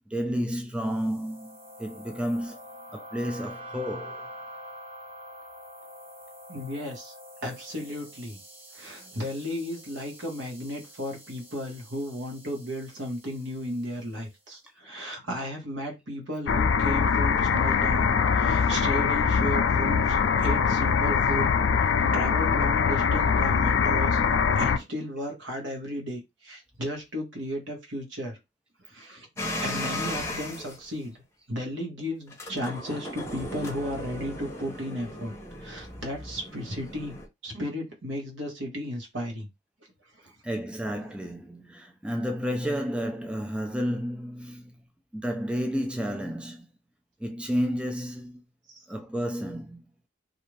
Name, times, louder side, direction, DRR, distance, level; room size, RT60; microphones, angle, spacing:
voice 1, 0.1-2.6 2.9-4.3 9.0-9.1 40.4-44.8 45.1-46.7 47.2-48.4 48.9-49.8, equal, 5° right, 0.3 m, -31 dB
sound 1, 0.8-14.2, equal, 30° right, 0.8 m, -46 dB
voice 2, 6.5-7.1 7.4-8.4 8.7-21.5 21.8-24.2 24.5-28.4 28.8-29.3 29.6-31.2 31.5-35.3 35.6-37.1 37.4-39.5 40.1-40.3 48.7-48.8, equal, 75° right, 1.1 m, -34 dB
sound 2, 16.5-24.8, left 6 dB, 75° left, 0.3 m, -23 dB
sound 3, 29.4-30.8 32.3-37.3, left 1 dB, 15° left, 0.7 m, -36 dB
2.5 x 2.4 x 3.1 m
head